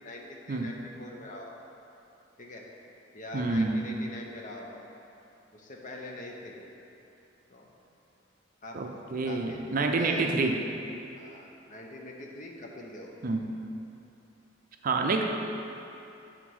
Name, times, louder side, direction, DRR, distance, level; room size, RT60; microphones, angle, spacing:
voice 1, 0.0-1.7 2.4-2.6 3.1-4.8 5.5-6.7 7.5-7.7 8.6-8.8 9.2-10.5 11.2-13.1, left 1 dB, 40° left, 0 dB, 0.9 m, -43 dB
voice 2, 3.3-3.9 8.7-10.5 13.2-13.5 14.8-15.2, right 3 dB, 45° right, 3 dB, 0.5 m, -27 dB
8.1 x 4.1 x 6.1 m, 2.8 s
head